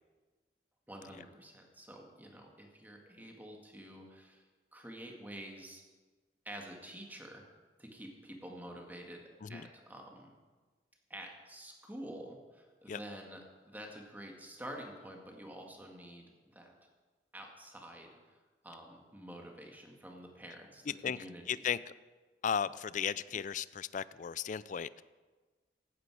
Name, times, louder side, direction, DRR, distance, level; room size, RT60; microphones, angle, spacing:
voice 1, 0.9-4.5 4.7-5.8 6.5-7.4 7.8-10.3 11.1-16.3 16.5-16.7 17.3-21.6, right 1 dB, 10° right, 1 dB, 1.9 m, -48 dB
voice 2, 20.9-21.9 22.4-25.0, left 7 dB, 45° left, 18 dB, 0.4 m, -36 dB
16.0 x 12.0 x 4.8 m, 1.3 s
head